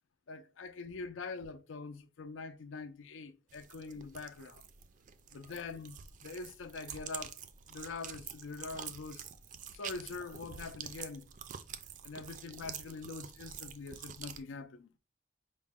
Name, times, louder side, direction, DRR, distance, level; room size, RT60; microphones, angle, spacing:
voice 1, 0.3-4.6 5.3-7.4 7.7-9.3 9.7-11.3 12.0-14.9, left 4 dB, 75° left, 0.5 m, -44 dB
sound 1, 3.5-14.4, right 8 dB, 40° right, 0.4 m, -47 dB
5.4 x 2.1 x 3.6 m
head